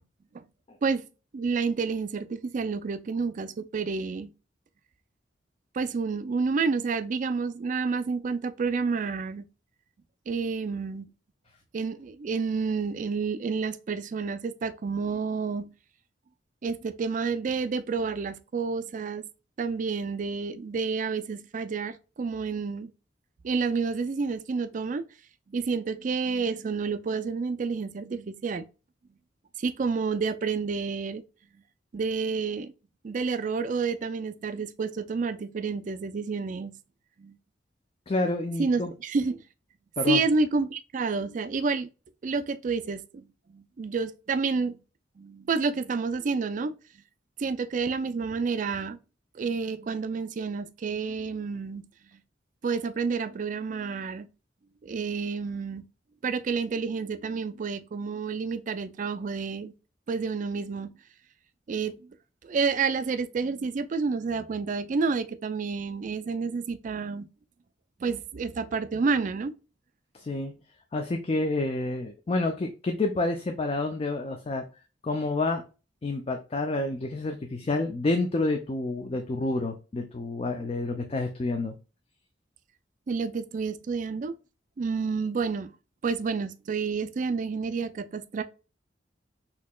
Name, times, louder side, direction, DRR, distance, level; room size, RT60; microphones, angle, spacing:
voice 1, 1.3-4.3 5.7-9.4 10.3-11.1 11.7-15.7 16.6-19.2 19.6-22.9 23.4-25.0 25.5-28.6 29.6-31.2 31.9-32.7 33.0-36.7 37.2-37.4 38.6-39.4 40.1-41.9 42.2-43.2 43.5-44.8 45.2-46.7 47.4-49.0 49.3-51.9 52.6-54.3 54.8-55.8 56.2-59.7 60.1-60.9 61.7-62.0 62.4-67.3 68.0-69.5 83.1-84.3 84.8-85.7 86.0-88.4, right 4 dB, 45° right, 0.4 m, -29 dB
voice 2, 38.1-38.9 40.0-40.2 70.1-70.5 70.9-74.6 75.0-75.6 76.0-81.7, left 2 dB, 35° left, 0.4 m, -29 dB
4.2 x 2.8 x 2.2 m
head